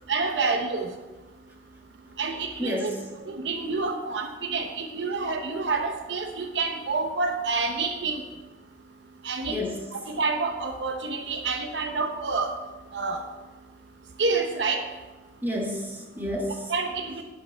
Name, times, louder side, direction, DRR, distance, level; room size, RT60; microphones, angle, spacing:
voice 1, 0.1-0.9 2.2-2.9 3.3-8.2 9.2-9.6 10.1-12.5 12.9-13.2 14.2-14.8 16.7-17.2, right 4 dB, 85° right, 5 dB, 0.8 m, -28 dB
voice 2, 2.6-3.1 9.4-10.0 15.4-16.7, left 1 dB, 10° right, -1 dB, 1.4 m, -30 dB
11.0 x 5.3 x 4.5 m, 1.2 s
head